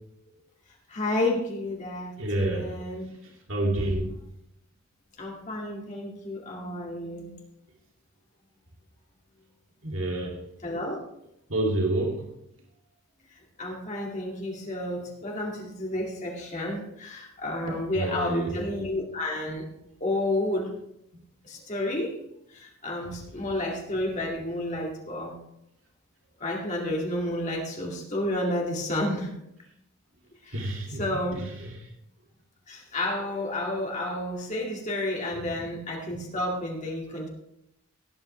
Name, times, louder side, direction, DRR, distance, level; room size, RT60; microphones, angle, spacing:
voice 1, 0.9-3.1 5.2-7.4 10.6-11.0 13.6-19.7 20.0-20.7 21.4-22.2 22.5-25.4 26.4-29.3 30.4-30.6 30.9-31.4 32.7-37.3, left 1 dB, 35° left, -2 dB, 2.4 m, -31 dB
voice 2, 2.2-2.8 3.5-4.1 9.8-10.4 11.5-12.2 18.0-18.6 30.5-31.2 31.6-31.7 35.3-35.4, right 1 dB, 60° right, -1 dB, 2.6 m, -28 dB
17.5 x 9.4 x 3.3 m, 0.80 s
head